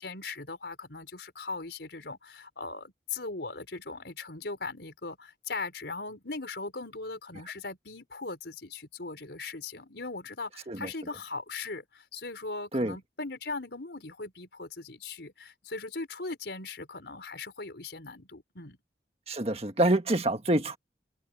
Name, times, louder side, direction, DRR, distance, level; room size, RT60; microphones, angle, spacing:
voice 1, 0.0-18.8, left 3 dB, 80° left, 4.1 m, -39 dB
voice 2, 19.3-20.8, right 1 dB, 35° right, 1.7 m, -26 dB
head